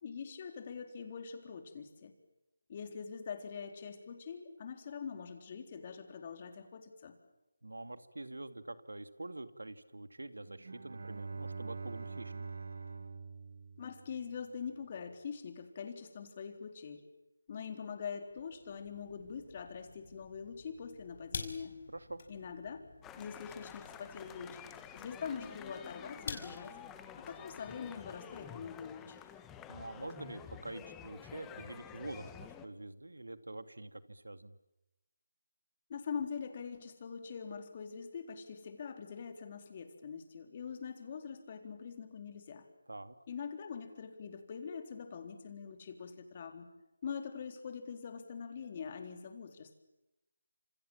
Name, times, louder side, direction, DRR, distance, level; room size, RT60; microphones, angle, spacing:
voice 1, 0.0-2.1 2.7-7.2 13.8-17.0 17.5-21.7 22.3-22.8 23.2-24.6 24.9-26.8 27.2-29.2 35.9-42.7 43.3-46.7 47.0-49.8, left 6 dB, 35° left, 6 dB, 3.8 m, -43 dB
voice 2, 7.6-12.5 21.9-22.2 29.7-34.6 42.9-43.2, right 2 dB, 85° right, 11 dB, 2.3 m, -46 dB
Bowed string instrument, 10.5-14.5, right 4 dB, 60° right, 2.4 m, -45 dB
sound 1, 18.3-28.8, left 4 dB, 50° left, 5.5 m, -50 dB
sound 2, 23.0-32.7, left 9 dB, 10° left, 1.4 m, -50 dB
29.0 x 27.5 x 7.4 m, 0.93 s
figure-of-eight pair, 160°, 0 cm